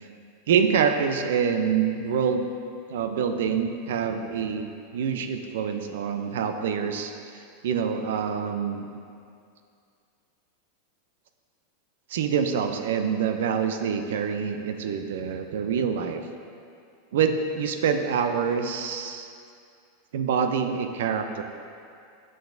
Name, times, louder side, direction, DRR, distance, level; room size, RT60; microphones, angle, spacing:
voice 1, 0.5-2.5 2.9-7.1 7.6-8.9 12.1-16.2 17.1-19.3 20.1-21.4, right 7 dB, 75° right, 7 dB, 0.4 m, -26 dB
6.7 x 6.2 x 2.6 m, 2.4 s
supercardioid pair, 125°, 0 cm